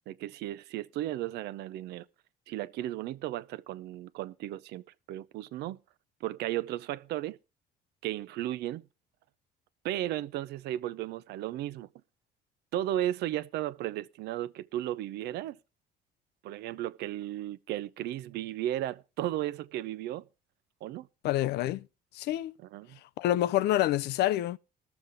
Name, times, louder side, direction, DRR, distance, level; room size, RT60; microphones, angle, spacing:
voice 1, 0.1-2.0 2.5-5.8 6.2-7.4 8.0-8.8 9.8-11.9 12.7-15.6 16.4-20.3 20.8-21.1 22.6-23.0, right 13 dB, 80° right, 0.6 m, -35 dB
voice 2, 21.2-21.9 22.1-22.5 23.2-24.6, left 14 dB, 75° left, 0.5 m, -27 dB
20.0 x 7.1 x 3.5 m
cardioid pair, 110°, 17 cm